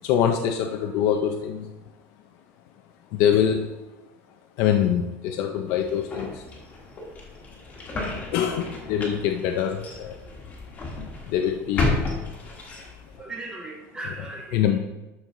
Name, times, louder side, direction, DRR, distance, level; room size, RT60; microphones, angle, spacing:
voice 1, 0.0-1.7 3.1-3.7 4.6-6.4 8.3-10.2 11.3-12.0 14.5-14.8, left 9 dB, 50° left, 4 dB, 0.5 m, -24 dB
sound 1, 5.7-13.2, left 2 dB, 25° left, 1.4 m, -32 dB
voice 2, 13.2-14.8, right 2 dB, 15° right, 2 dB, 0.5 m, -37 dB
12.0 x 4.6 x 3.7 m, 1.1 s
cardioid pair, 180°, 7 cm